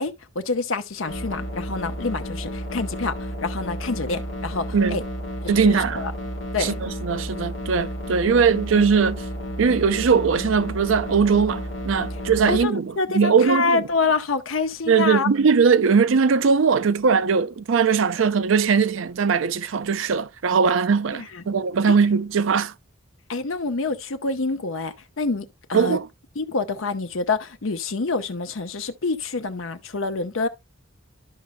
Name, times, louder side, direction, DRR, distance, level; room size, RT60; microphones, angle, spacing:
voice 1, 0.0-5.0 5.6-6.1 6.5-6.8 12.5-15.3 21.1-21.4 21.9-22.0 23.3-26.0 26.4-30.5, left 3 dB, 90° left, 0.8 m, -27 dB
sound 1, 1.1-12.6, equal, 70° left, 1.2 m, -32 dB
voice 2, 5.5-6.0 6.6-9.2 9.6-13.8 14.9-22.7 25.7-26.1, right 5 dB, 80° right, 0.5 m, -20 dB
12.5 x 5.3 x 2.2 m
head